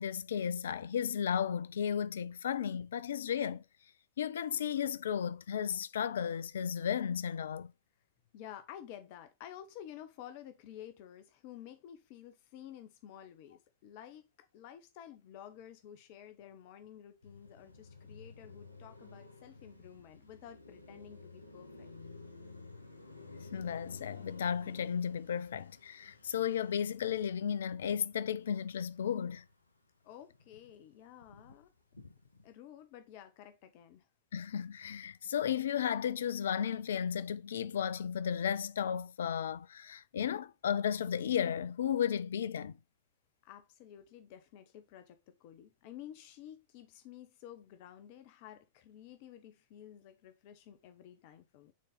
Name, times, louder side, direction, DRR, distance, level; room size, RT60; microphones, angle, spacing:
voice 1, 0.0-3.6 4.2-7.7 23.3-29.4 34.3-42.7, left 8 dB, 65° left, 0.4 m, -34 dB
voice 2, 8.3-14.2 14.5-21.9 30.0-31.7 32.4-34.1 43.4-51.7, left 10 dB, 45° left, 0.8 m, -52 dB
Car passing by, 17.2-29.7 30.0-32.5, left 3 dB, 85° left, 0.8 m, -54 dB
6.3 x 4.0 x 4.0 m
figure-of-eight pair, 90°, 0 cm